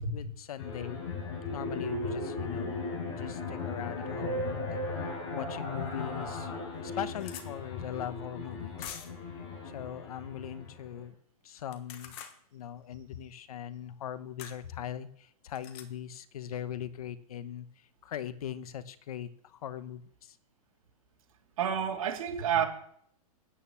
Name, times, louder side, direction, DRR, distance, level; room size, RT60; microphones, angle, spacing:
voice 1, 0.1-1.0 1.5-2.8 3.1-4.8 5.3-9.0 9.6-11.2 11.4-12.2 12.5-20.4, left 10 dB, 70° left, 1.0 m, -40 dB
sound 1, 0.6-11.0, left 2 dB, 50° left, 5.5 m, -37 dB
sound 2, 5.8-5.9 6.4-6.5 6.7-7.5 8.8-9.3 11.6-12.4 14.4-14.6 15.5-15.9, left 9 dB, 30° left, 1.2 m, -45 dB
voice 2, 21.6-22.6, right 8 dB, 60° right, 3.1 m, -29 dB
9.2 x 8.9 x 7.1 m
hypercardioid pair, 165°, 19 cm